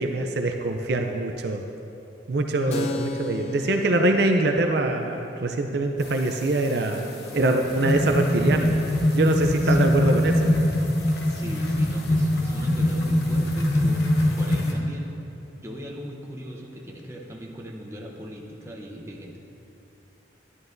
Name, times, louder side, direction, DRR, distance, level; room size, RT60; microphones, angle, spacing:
voice 1, 0.0-1.6 2.3-7.0 7.3-8.7 9.1-10.5, right 2 dB, 60° right, 4 dB, 0.5 m, -24 dB
voice 2, 2.6-3.1 9.6-10.2 11.3-14.0 14.4-15.1 15.6-19.4, equal, 15° right, -1 dB, 0.8 m, -39 dB
Keyboard (musical), 2.7-10.0, left 3 dB, 35° left, 0.4 m, -39 dB
sound 1, 6.0-14.7, left 3 dB, 60° left, 1.0 m, -43 dB
sound 2, 7.3-14.9, left 1 dB, 85° left, 1.0 m, -23 dB
11.0 x 11.0 x 2.6 m, 2.9 s
head